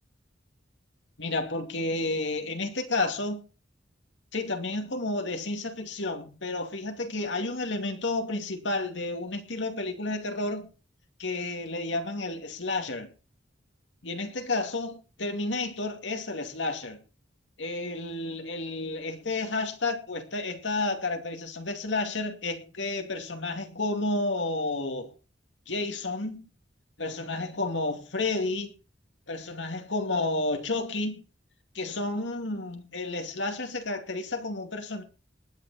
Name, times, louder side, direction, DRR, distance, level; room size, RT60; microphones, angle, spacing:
voice 1, 1.2-3.4 4.3-10.7 11.2-13.1 14.0-17.0 17.6-25.1 25.7-26.5 27.0-28.7 29.3-31.2 31.7-35.0, left 2 dB, 75° left, 2.6 m, -31 dB
19.5 x 9.3 x 4.3 m
head